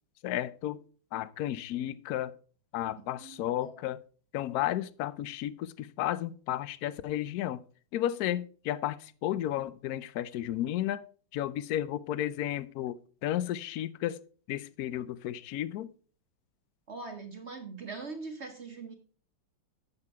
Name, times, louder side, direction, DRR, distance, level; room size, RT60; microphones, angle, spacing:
voice 1, 0.2-0.8 1.1-2.3 2.7-4.0 4.3-7.6 7.9-11.0 11.3-13.0 13.2-14.2 14.5-15.9, left 12 dB, 70° left, 0.9 m, -33 dB
voice 2, 3.2-3.8 16.9-18.9, right 4 dB, 50° right, 0.9 m, -42 dB
8.3 x 7.1 x 4.6 m
omnidirectional pair, 2.1 m